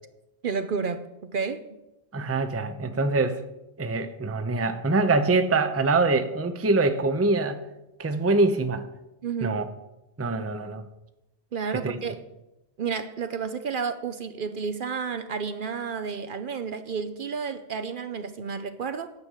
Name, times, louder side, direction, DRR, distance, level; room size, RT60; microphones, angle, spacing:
voice 1, 0.4-1.6 9.2-9.6 11.5-12.2 12.8-19.1, right 5 dB, 55° right, 0.8 m, -31 dB
voice 2, 2.1-3.4 3.8-7.6 8.0-8.8 9.4-9.6 10.2-10.9 11.7-12.0, right 3 dB, 15° right, 0.5 m, -24 dB
9.6 x 6.0 x 8.2 m
omnidirectional pair, 1.1 m